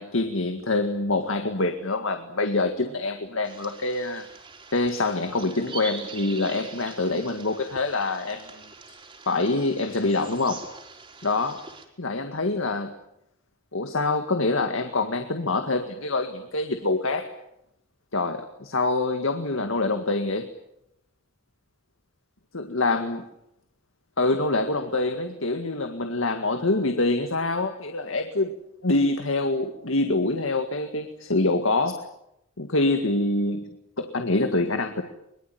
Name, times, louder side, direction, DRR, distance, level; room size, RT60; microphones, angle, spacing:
voice 1, 0.0-4.3 4.7-8.6 9.3-10.7 11.2-11.6 12.0-12.9 13.7-17.3 18.1-20.5 22.5-23.2 24.2-28.5 28.8-32.0 32.6-33.7 34.0-35.0, left 2 dB, 85° left, 7 dB, 1.9 m, -25 dB
sound 1, 3.4-11.9, right 4 dB, 25° right, 4.1 m, -43 dB
23.0 x 23.0 x 9.3 m, 0.82 s
head